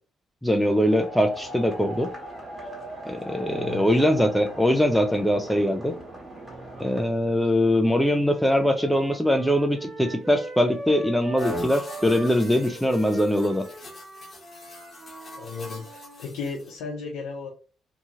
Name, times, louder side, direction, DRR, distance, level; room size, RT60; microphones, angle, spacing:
voice 1, 0.4-2.1 3.1-5.9 6.8-13.6, equal, 5° left, 5 dB, 0.4 m, -22 dB
sound 1, 0.6-7.0, right 1 dB, 25° right, 1.3 m, -39 dB
voice 2, 3.5-4.1 15.4-17.5, left 4 dB, 85° left, 0 dB, 0.6 m, -35 dB
sound 2, 7.7-11.5 11.8-16.2, right 2 dB, 50° right, 0.9 m, -40 dB
sound 3, 11.4-16.8, left 1 dB, 40° left, 1.0 m, -39 dB
2.7 x 2.3 x 2.8 m, 0.36 s
supercardioid pair, 70°, 0 cm